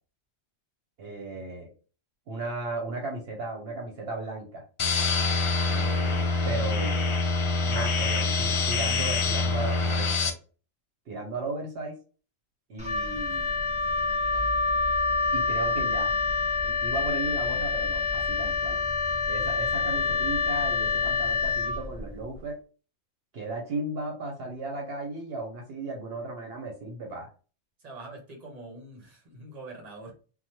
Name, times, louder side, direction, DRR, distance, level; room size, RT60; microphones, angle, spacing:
voice 1, 1.0-1.7 2.3-4.6 5.7-7.2 7.6-10.3 11.1-12.0 12.7-13.5 15.3-16.1 16.6-18.8 19.3-22.6 23.3-27.3, right 2 dB, 70° right, 1 dB, 0.9 m, -35 dB
sound 1, 4.8-10.3, left 3 dB, 55° left, 0.3 m, -25 dB
Wind instrument woodwind instrument, 12.8-22.3, left 4 dB, 5° right, 0.7 m, -27 dB
voice 2, 27.8-30.1, right 2 dB, 40° right, 0 dB, 1.0 m, -44 dB
2.9 x 2.1 x 2.9 m, 0.36 s
omnidirectional pair, 1.1 m